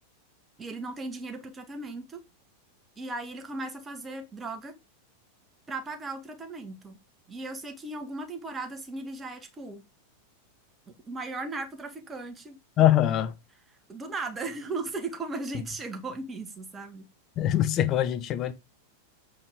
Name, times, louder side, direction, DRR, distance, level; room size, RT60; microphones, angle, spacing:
voice 1, 0.6-2.2 3.0-4.7 5.7-7.0 7.3-9.8 10.9-12.6 13.9-17.1, right 3 dB, 15° right, 1.8 m, -37 dB
voice 2, 12.8-13.3 17.4-18.5, left 12 dB, 35° left, 1.0 m, -23 dB
7.7 x 4.8 x 5.0 m
figure-of-eight pair, 90°, 0 cm